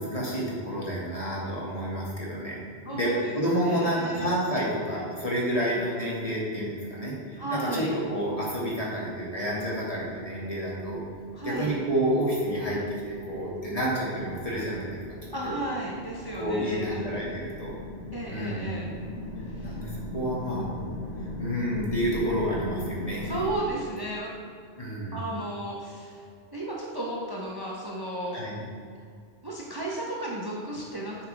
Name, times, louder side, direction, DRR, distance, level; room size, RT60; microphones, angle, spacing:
voice 1, 0.0-2.6 2.9-11.0 11.4-15.0 15.4-15.6 16.4-17.7 18.3-18.7 19.6-20.7 21.4-23.3 24.8-25.2 28.3-28.6, equal, 30° left, -5 dB, 2.4 m, -29 dB
voice 2, 2.8-4.4 5.6-5.8 7.4-7.9 11.3-11.7 15.3-17.0 18.1-18.9 19.6-19.7 23.2-24.3 25.1-26.2 26.5-28.4 29.4-31.2, right 1 dB, 20° right, -4 dB, 1.3 m, -34 dB
sound 1, 9.4-23.5, left 1 dB, 85° left, 1.9 m, -39 dB
10.5 x 8.9 x 3.6 m, 2.2 s
omnidirectional pair, 1.1 m